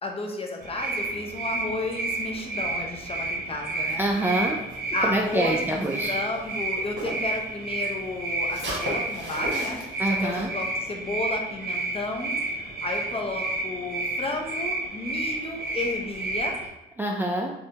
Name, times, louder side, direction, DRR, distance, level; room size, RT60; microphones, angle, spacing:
voice 1, 0.0-4.0 4.9-9.8 10.2-16.6, left 2 dB, 30° left, 2 dB, 0.7 m, -32 dB
sound 1, 0.6-16.7, right 2 dB, 55° right, 0.7 m, -31 dB
sound 2, 3.8-7.4 7.7-10.5, equal, 70° right, 1.4 m, -37 dB
voice 2, 4.0-4.6 5.0-6.1 10.0-10.5 17.0-17.5, right 1 dB, 10° right, -1 dB, 0.3 m, -26 dB
3.3 x 2.6 x 2.8 m, 0.89 s
cardioid pair, 90°, 20 cm